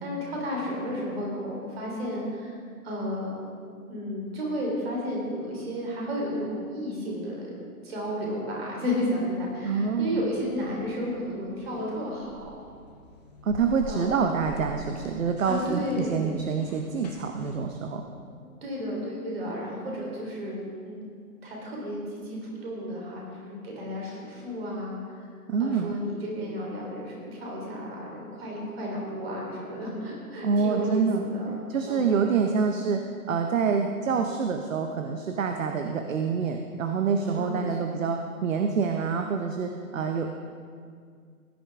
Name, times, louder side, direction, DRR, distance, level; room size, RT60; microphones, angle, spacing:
voice 1, 0.0-2.6 2.8-3.3 3.9-7.6 7.8-12.5 13.9-14.2 15.5-16.2 18.3-21.0 21.4-25.3 25.6-31.6 31.9-32.1 37.3-37.9, equal, 40° right, -3 dB, 3.6 m, -32 dB
sound 1, 9.3-17.6, right 1 dB, 25° left, 1.0 m, -45 dB
voice 2, 9.6-10.3 13.4-18.0 25.5-26.0 30.4-31.3 31.7-40.3, right 5 dB, 55° right, 5 dB, 0.8 m, -27 dB
16.5 x 10.0 x 3.6 m, 2.1 s
hypercardioid pair, 170°, 46 cm